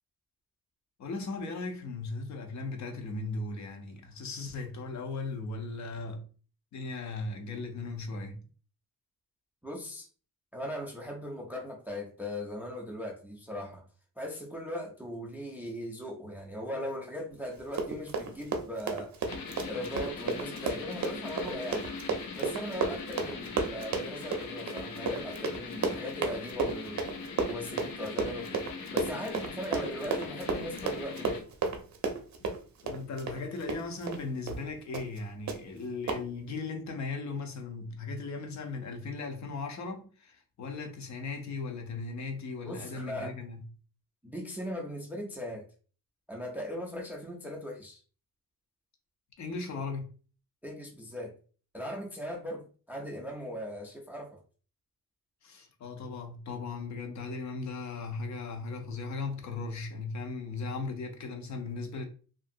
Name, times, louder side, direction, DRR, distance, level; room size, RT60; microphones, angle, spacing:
voice 1, 1.0-6.2 6.7-8.5 32.8-43.6 49.4-50.1 55.4-62.0, left 3 dB, 55° left, 0.6 m, -37 dB
voice 2, 9.6-10.1 10.5-13.8 14.2-19.1 19.6-21.9 22.3-27.0 27.5-31.4 42.7-43.3 44.2-45.7 46.3-48.0 50.6-51.3 51.7-54.4, equal, 5° right, 0.3 m, -39 dB
Run, 17.6-34.2 34.5-34.6 34.9-35.2 35.5-35.6 36.1-36.2, right 4 dB, 50° right, 0.6 m, -33 dB
sound 1, 19.3-31.4, left 5 dB, 90° left, 0.7 m, -41 dB
2.7 x 2.5 x 2.6 m
wide cardioid pair, 160°, 35 cm